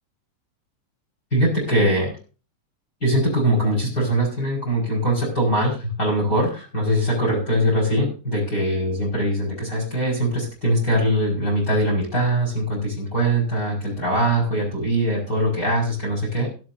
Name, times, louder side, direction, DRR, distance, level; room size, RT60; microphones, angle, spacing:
voice 1, 1.3-2.1 3.0-16.5, right 1 dB, 25° left, 0 dB, 5.7 m, -22 dB
17.0 x 14.0 x 2.6 m, 0.37 s
omnidirectional pair, 3.5 m